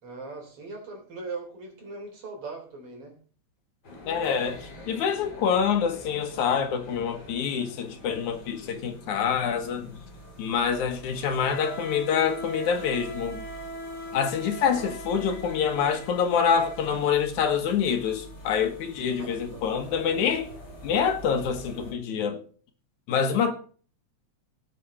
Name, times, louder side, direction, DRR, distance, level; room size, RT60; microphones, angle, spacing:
voice 1, 0.0-3.1 14.6-14.9 19.2-19.6, right 3 dB, 50° right, 4.1 m, -40 dB
sound 1, 3.8-21.9, equal, 40° left, 3.8 m, -42 dB
voice 2, 4.1-10.0 10.4-13.4 14.1-20.5 20.8-22.4 23.1-23.5, left 7 dB, 90° left, 2.9 m, -26 dB
18.5 x 7.6 x 4.2 m
omnidirectional pair, 3.3 m